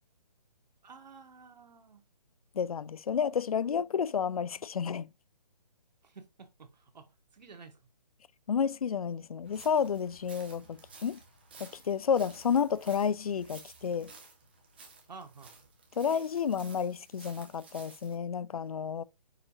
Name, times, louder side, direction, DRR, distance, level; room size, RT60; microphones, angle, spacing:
voice 1, 0.8-2.0 6.0-7.8 15.1-15.6, right 5 dB, 90° right, 1.2 m, -51 dB
voice 2, 2.6-5.1 8.5-11.2 11.6-14.1 16.0-19.0, left 7 dB, 60° left, 0.4 m, -31 dB
sound 1, 9.4-18.2, right 4 dB, 15° right, 0.6 m, -54 dB
6.4 x 2.6 x 2.9 m
hypercardioid pair, 175°, 21 cm